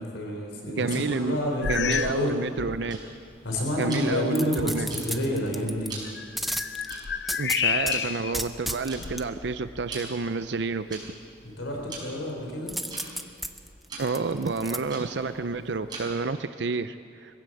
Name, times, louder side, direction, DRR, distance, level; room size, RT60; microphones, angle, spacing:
voice 1, 0.0-2.4 3.4-5.9 11.4-12.8, left 1 dB, 85° left, 0 dB, 3.9 m, -29 dB
voice 2, 0.7-1.4 1.6-3.0 3.8-4.9 7.4-11.0 14.0-17.4, right 4 dB, 65° right, 11 dB, 0.5 m, -29 dB
Tick-tock, 0.9-16.3, right 3 dB, 25° right, 5.6 m, -45 dB
sound 1, 1.6-2.3 2.6-2.9 3.6-3.7 6.1-8.4 8.9-10.0, left 8 dB, 60° left, 0.5 m, -30 dB
sound 2, 4.3-5.9 6.4-8.0 8.3-9.2 12.7-14.8 15.2-15.3, equal, ahead, 0.6 m, -33 dB
21.5 x 15.5 x 7.8 m, 2.4 s
head